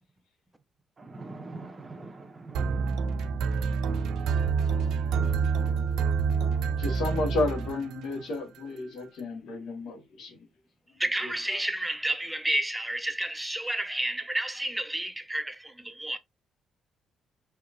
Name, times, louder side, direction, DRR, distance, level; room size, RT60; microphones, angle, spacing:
voice 1, 1.0-3.2, right 3 dB, 30° right, 0.9 m, -43 dB
sound 1, 2.5-8.2, right 5 dB, 85° right, 0.4 m, -27 dB
voice 2, 6.8-10.4 11.2-11.3, left 2 dB, 80° left, 1.5 m, -32 dB
voice 3, 11.0-16.2, right 1 dB, 10° right, 0.5 m, -30 dB
4.5 x 2.9 x 2.5 m
cardioid pair, 90°, 0 cm